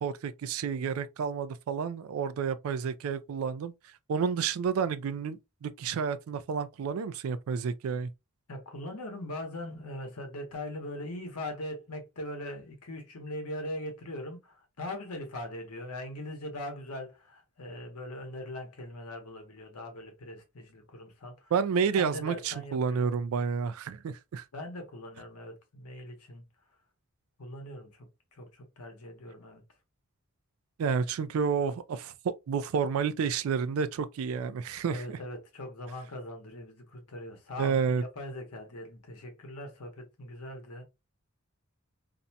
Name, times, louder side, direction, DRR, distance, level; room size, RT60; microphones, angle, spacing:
voice 1, 0.0-3.7 4.1-8.1 21.5-24.4 30.8-35.2 37.6-38.0, right 6 dB, 70° right, 0.3 m, -30 dB
voice 2, 8.5-21.5 21.9-23.1 24.5-26.4 27.4-29.6 34.8-40.8, left 1 dB, 90° left, 0.9 m, -41 dB
2.6 x 2.1 x 2.6 m
head